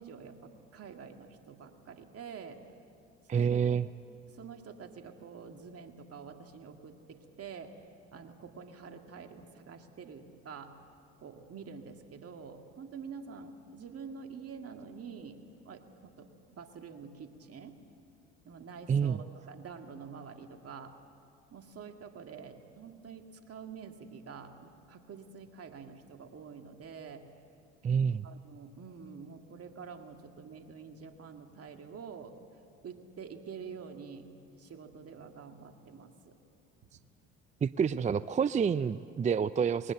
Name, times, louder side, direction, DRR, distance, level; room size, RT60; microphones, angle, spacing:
voice 1, 0.0-2.6 3.2-3.6 4.3-7.7 8.1-10.7 11.2-15.4 15.7-17.8 18.5-20.9 21.5-27.3 28.2-32.4 32.8-34.3 34.6-36.4, right 6 dB, 45° right, 5 dB, 2.1 m, -47 dB
voice 2, 3.3-3.9 18.9-19.2 27.8-28.3 37.6-39.9, right 7 dB, 25° right, 15 dB, 0.4 m, -28 dB
21.0 x 18.5 x 7.9 m, 2.6 s
hypercardioid pair, 65°, 32 cm